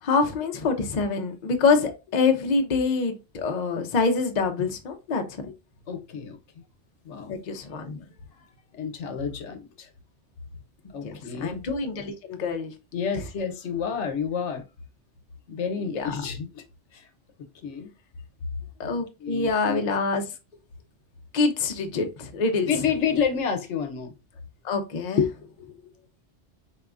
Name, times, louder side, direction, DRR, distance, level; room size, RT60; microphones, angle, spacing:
voice 1, 0.0-5.5 7.3-8.0 10.8-12.7 15.9-16.1 18.8-20.3 21.3-22.7 24.6-25.4, left 4 dB, 45° left, 0.7 m, -25 dB
voice 2, 5.9-6.4 7.0-7.3 8.7-9.9 10.9-11.6 12.9-14.6 15.5-16.6 16.9-17.1 17.6-17.9 19.2-19.8 22.7-24.1, left 6 dB, 80° left, 1.0 m, -29 dB
4.7 x 3.5 x 2.5 m
omnidirectional pair, 1.2 m